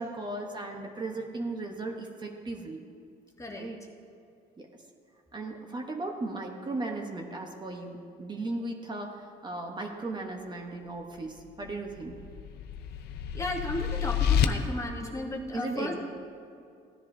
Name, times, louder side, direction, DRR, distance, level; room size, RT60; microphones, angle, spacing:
voice 1, 0.0-2.8 3.6-3.8 4.6-4.7 5.3-12.2 15.5-15.9, right 2 dB, 25° right, 2 dB, 1.1 m, -36 dB
voice 2, 3.4-3.7 13.3-15.9, left 1 dB, 20° left, 1 dB, 1.2 m, -34 dB
sound 1, 11.6-14.5, left 9 dB, 75° left, 0.6 m, -29 dB
16.0 x 10.5 x 2.7 m, 2.4 s
cardioid pair, 110°, 17 cm